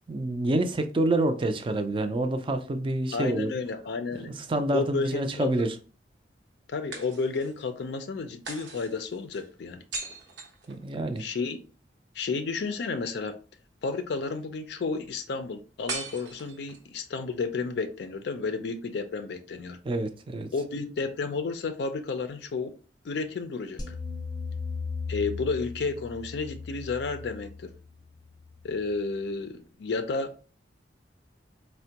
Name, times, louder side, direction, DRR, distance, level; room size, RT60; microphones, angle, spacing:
voice 1, 0.1-3.5 4.4-5.7 10.7-11.2 19.8-20.5, right 1 dB, 30° right, 0.4 m, -27 dB
voice 2, 3.1-4.3 4.7-5.7 6.7-9.8 11.2-11.6 12.1-13.4 13.8-19.8 20.5-22.7 23.0-24.0 25.1-27.7 28.6-30.3, left 4 dB, 65° left, 0.4 m, -32 dB
sound 1, 3.8-4.9 6.9-7.7 8.5-11.3 15.9-17.0, right 3 dB, 90° right, 0.9 m, -40 dB
sound 2, 23.8-29.0, left 4 dB, 25° left, 0.6 m, -37 dB
4.3 x 2.1 x 2.8 m
head